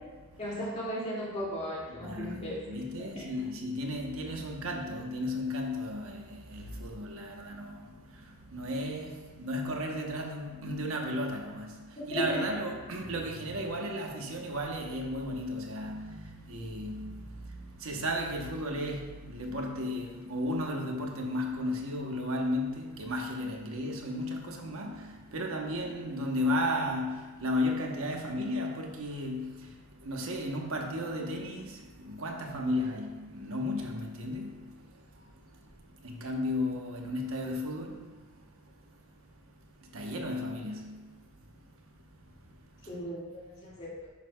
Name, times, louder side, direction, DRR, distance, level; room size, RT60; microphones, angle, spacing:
voice 1, 0.4-3.3 12.1-12.4 42.9-44.1, equal, 30° left, 2.2 m, -36 dB
voice 2, 2.0-43.0, left 1 dB, 80° right, 1.0 m, -35 dB
9.6 x 6.4 x 2.3 m
head